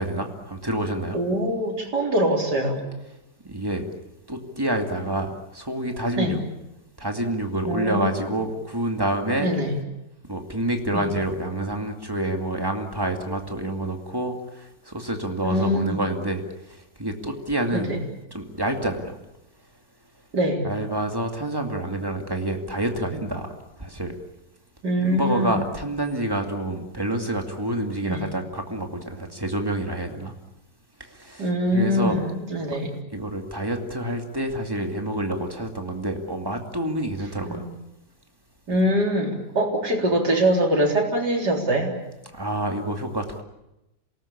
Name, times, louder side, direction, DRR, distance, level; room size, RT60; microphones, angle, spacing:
voice 1, 0.0-1.2 3.4-3.9 4.3-6.4 7.0-9.5 10.3-17.9 18.3-19.2 20.6-23.5 23.8-24.2 25.0-30.3 31.0-32.2 32.7-32.8 33.1-37.7 42.3-43.4, right 1 dB, 10° right, 4 dB, 2.4 m, -28 dB
voice 2, 1.1-2.8 6.2-6.4 7.7-8.1 9.4-9.8 10.9-11.1 15.4-16.0 17.7-18.0 20.3-20.6 24.8-25.5 28.0-28.2 31.4-32.9 37.4-37.7 38.7-41.9, equal, 60° right, 1 dB, 4.4 m, -23 dB
27.5 x 19.0 x 8.7 m, 0.92 s
omnidirectional pair, 2.0 m